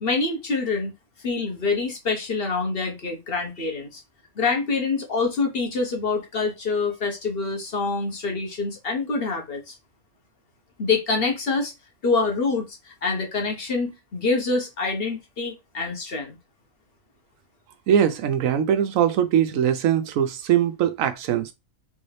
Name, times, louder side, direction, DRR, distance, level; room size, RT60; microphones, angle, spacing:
voice 1, 0.0-0.9 1.2-4.0 4.4-9.7 10.8-11.7 12.0-16.4, left 4 dB, 50° left, 1.1 m, -26 dB
voice 2, 17.9-21.5, right 9 dB, 85° right, 1.0 m, -21 dB
3.4 x 2.7 x 3.2 m
omnidirectional pair, 1.4 m